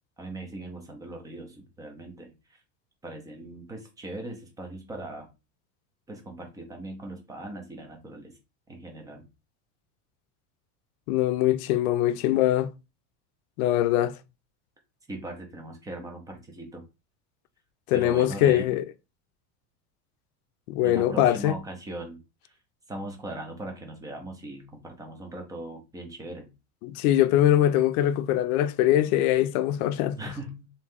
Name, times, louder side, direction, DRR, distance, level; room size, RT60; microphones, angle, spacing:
voice 1, 0.2-2.3 3.0-5.3 6.1-8.3 8.7-9.3 15.1-16.8 17.9-18.7 20.8-22.2 22.9-26.5 30.2-30.7, right 1 dB, 10° right, 0.4 m, -39 dB
voice 2, 11.1-12.7 13.6-14.2 17.9-18.8 20.7-21.6 26.8-30.2, left 12 dB, 75° left, 0.5 m, -22 dB
3.0 x 2.7 x 3.5 m
supercardioid pair, 155°, 44 cm